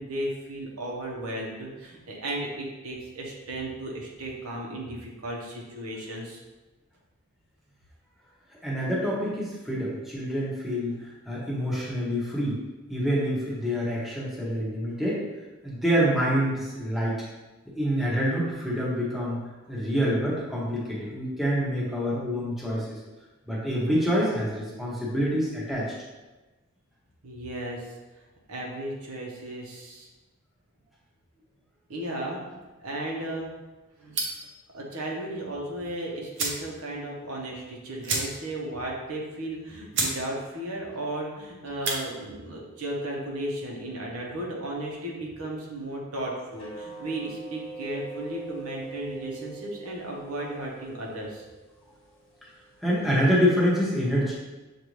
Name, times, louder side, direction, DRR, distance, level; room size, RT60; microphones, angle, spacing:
voice 1, 0.0-6.4 27.2-27.9 28.5-30.1 31.9-33.5 34.0-34.2 34.7-51.4, right 1 dB, 85° right, -2 dB, 1.0 m, -35 dB
voice 2, 8.6-12.6 12.9-15.2 15.6-17.1 17.7-19.4 19.7-23.0 23.5-25.9 52.8-54.3, equal, ahead, -7 dB, 0.9 m, -26 dB
sound 1, 34.1-34.5 35.8-35.9 36.3-36.7 37.0-37.1 37.4-37.5 38.0-38.6 39.0-39.1 39.6-39.7 39.9-40.2 40.5-40.9 41.6-42.0, right 3 dB, 55° right, 0.8 m, -30 dB
sound 2, 46.5-53.5, right 4 dB, 60° left, 1.2 m, -44 dB
6.7 x 2.6 x 3.1 m, 1.2 s
head